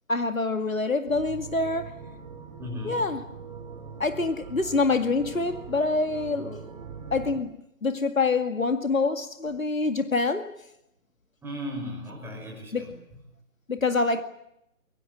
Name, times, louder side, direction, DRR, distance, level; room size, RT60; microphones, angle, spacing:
voice 1, 0.1-1.9 2.8-3.2 4.0-6.7 7.1-7.5 7.8-10.5 12.7-12.9 13.7-14.2, left 3 dB, 70° left, 2.1 m, -26 dB
sound 1, 1.1-7.4, right 6 dB, 30° right, 2.6 m, -42 dB
voice 2, 2.6-3.1 11.4-12.9, left 1 dB, 5° right, 5.9 m, -36 dB
24.0 x 23.0 x 7.8 m
figure-of-eight pair, 145°, 42 cm